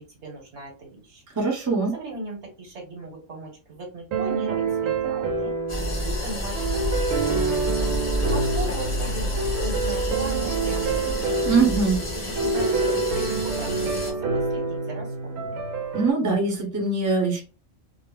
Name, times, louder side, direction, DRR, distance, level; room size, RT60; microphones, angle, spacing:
voice 1, 0.0-1.2 1.9-5.6 6.0-7.9 8.3-11.4 12.2-15.6, right 2 dB, 60° right, 1 dB, 1.2 m, -38 dB
voice 2, 1.4-1.9 11.4-12.0 15.9-17.4, right 4 dB, 20° right, 0 dB, 0.6 m, -22 dB
sound 1, 4.1-16.1, right 4 dB, 85° right, 1.0 m, -27 dB
sound 2, 5.7-14.1, left 1 dB, 25° left, 0.8 m, -29 dB
2.5 x 2.0 x 3.1 m, 0.33 s
omnidirectional pair, 1.3 m